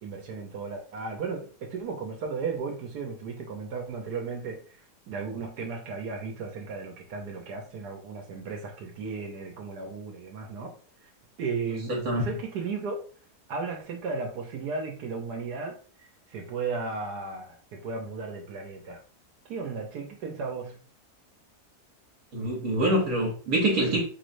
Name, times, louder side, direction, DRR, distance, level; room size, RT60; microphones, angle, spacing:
voice 1, 0.0-10.7 11.0-11.1 11.4-13.0 13.5-19.0 19.4-20.8, right 4 dB, 80° right, 1 dB, 1.4 m, -35 dB
voice 2, 11.9-12.3 22.3-24.1, right 1 dB, 60° right, -1 dB, 1.5 m, -25 dB
4.8 x 3.2 x 2.5 m, 0.40 s
omnidirectional pair, 1.7 m